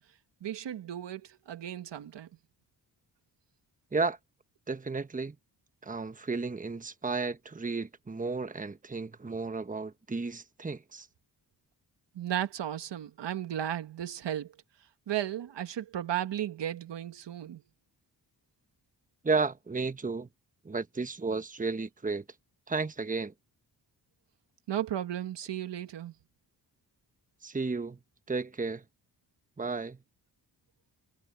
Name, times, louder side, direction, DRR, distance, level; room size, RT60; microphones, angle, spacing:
voice 1, 0.4-2.3 12.1-14.5 15.1-17.6 24.7-26.1, right 11 dB, 85° right, 1.6 m, -35 dB
voice 2, 4.7-5.4 5.8-11.1 19.2-20.3 20.6-22.2 22.7-23.3 27.4-28.0 28.3-28.8 29.6-30.0, right 4 dB, 20° right, 1.1 m, -33 dB
cardioid pair, 75°, 41 cm